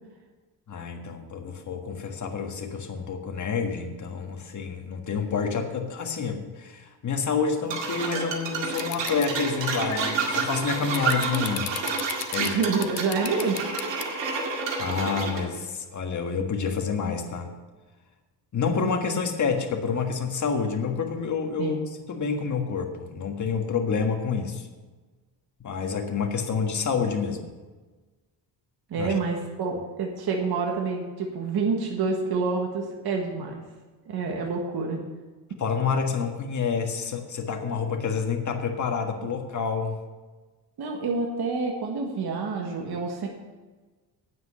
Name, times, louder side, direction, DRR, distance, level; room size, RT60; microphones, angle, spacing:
voice 1, 0.7-11.7 12.3-12.5 14.6-17.5 18.5-21.8 22.1-24.7 25.6-27.5 29.0-29.1 35.6-40.0, left 5 dB, 40° left, 4 dB, 1.6 m, -28 dB
sound 1, 7.7-15.4, right 4 dB, 80° right, 2.2 m, -29 dB
sound 2, 8.8-9.3 9.7-14.0, left 16 dB, 90° left, 0.7 m, -34 dB
voice 2, 12.3-13.6 21.6-21.8 28.9-33.6 34.0-35.0 40.8-43.3, right 4 dB, 60° right, 1 dB, 1.7 m, -28 dB
9.4 x 7.9 x 6.8 m, 1.3 s
cardioid pair, 105°, 43 cm